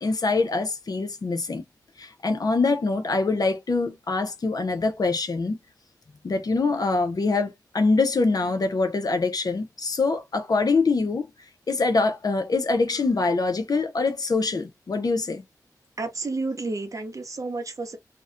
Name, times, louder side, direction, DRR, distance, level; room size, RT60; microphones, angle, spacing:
voice 1, 0.0-1.6 2.0-5.6 6.2-11.3 11.7-15.4, left 3 dB, 65° left, 0.6 m, -24 dB
voice 2, 16.0-18.0, right 3 dB, 50° right, 0.5 m, -31 dB
2.4 x 2.1 x 2.4 m
wide cardioid pair, 70°, 7 cm